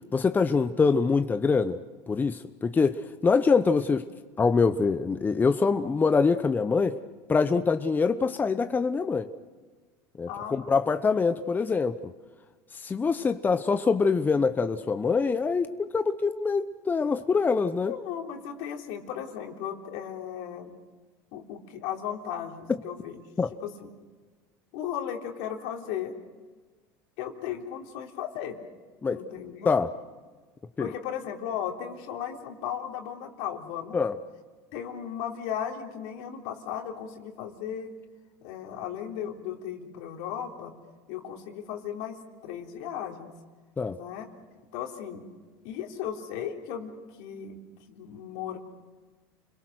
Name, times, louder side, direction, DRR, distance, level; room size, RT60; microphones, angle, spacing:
voice 1, 0.1-1.8 2.1-4.0 4.4-7.0 7.3-9.3 10.2-12.1 12.7-17.9 23.4-23.5 29.0-29.2 29.6-29.9 30.8-30.9 33.9-34.2 43.8-44.0, left 4 dB, 20° left, 9 dB, 0.9 m, -24 dB
voice 2, 10.3-10.7 17.9-20.7 21.3-23.2 23.6-23.7 24.7-26.1 27.2-28.6 29.1-29.7 30.8-34.0 34.7-37.9 38.4-40.7 41.1-43.3 43.9-44.3 44.7-45.2 45.6-47.6 48.0-48.6, left 9 dB, 75° left, 2 dB, 3.5 m, -36 dB
29.5 x 22.0 x 6.5 m, 1.4 s
supercardioid pair, 110°, 9 cm